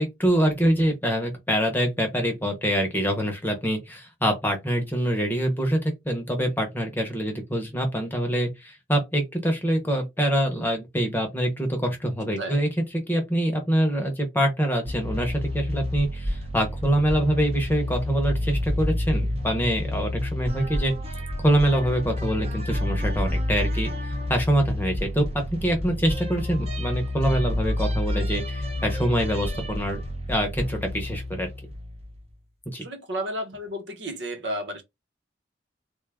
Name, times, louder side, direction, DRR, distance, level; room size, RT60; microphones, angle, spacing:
voice 1, 0.0-5.8 6.0-12.7 13.1-20.9 21.4-23.9 24.3-25.2 25.6-30.0 30.3-31.5 32.7-32.8, equal, 10° left, 0.8 m, -25 dB
voice 2, 12.3-12.7 32.8-34.8, equal, 85° right, 1.1 m, -32 dB
sound 1, 14.9-32.2, left 1 dB, 35° right, 0.7 m, -29 dB
3.6 x 2.4 x 3.4 m
head